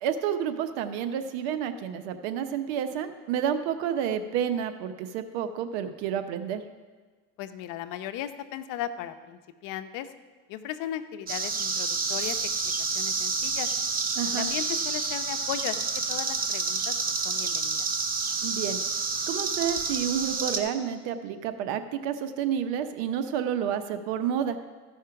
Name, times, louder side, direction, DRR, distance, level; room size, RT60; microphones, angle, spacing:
voice 1, 0.0-6.6 14.2-14.5 18.4-18.8 19.3-24.6, right 8 dB, 90° right, 9 dB, 0.9 m, -30 dB
voice 2, 7.4-10.1 10.5-12.4 12.9-13.8 14.3-17.9, left 11 dB, 70° left, 10 dB, 0.8 m, -36 dB
sound 1, 11.3-20.6, right 4 dB, 25° right, 1.1 m, -29 dB
14.5 x 5.6 x 5.8 m, 1.4 s
supercardioid pair, 110°, 32 cm